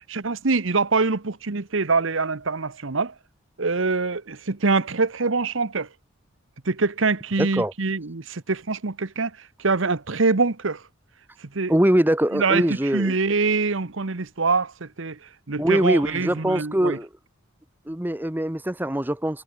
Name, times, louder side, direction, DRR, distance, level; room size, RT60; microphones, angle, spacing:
voice 1, 0.0-3.1 3.6-5.9 6.6-10.8 11.4-11.7 12.3-15.2 15.5-17.0, right 4 dB, 75° right, 1.1 m, -24 dB
voice 2, 7.4-7.7 11.7-13.1 15.6-17.1 17.9-19.4, right 1 dB, 10° right, 0.8 m, -22 dB
head